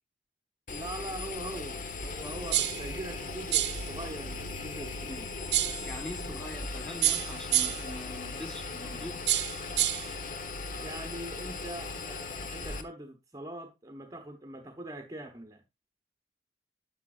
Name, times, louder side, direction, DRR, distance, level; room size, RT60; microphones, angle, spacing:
Engine, 0.7-12.8, left 3 dB, 50° left, 1.1 m, -38 dB
voice 1, 0.7-5.3 10.8-15.6, right 1 dB, 20° right, 1.0 m, -42 dB
sound 1, 2.5-2.9 3.5-3.9 5.5-5.9 7.0-7.9 9.3-10.1, right 14 dB, 70° right, 0.9 m, -27 dB
voice 2, 5.8-9.3, left 1 dB, 5° left, 1.5 m, -43 dB
10.5 x 7.0 x 2.5 m
head